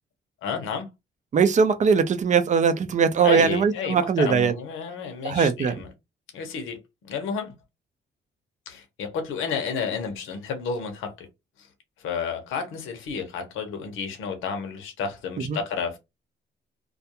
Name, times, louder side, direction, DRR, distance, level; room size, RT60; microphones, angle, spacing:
voice 1, 0.4-0.9 3.2-5.9 6.3-6.8 7.0-7.5 8.7-11.1 12.0-16.0, left 6 dB, 85° left, 0.8 m, -31 dB
voice 2, 1.3-4.5 5.2-5.7 15.5-15.6, right 6 dB, 40° right, 0.5 m, -20 dB
2.3 x 2.2 x 2.8 m
cardioid pair, 90°, 20 cm